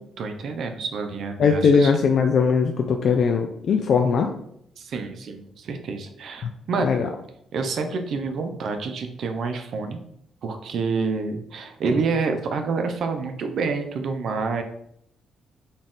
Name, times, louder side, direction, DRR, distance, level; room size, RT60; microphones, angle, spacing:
voice 1, 0.2-1.9 4.8-7.0 7.5-10.0 10.4-14.6, right 4 dB, 65° right, 5 dB, 0.5 m, -28 dB
voice 2, 1.4-4.3 6.4-6.5 6.8-7.1, left 5 dB, 60° left, 4 dB, 0.3 m, -20 dB
4.0 x 2.4 x 3.6 m, 0.71 s
cardioid pair, 90°, 0 cm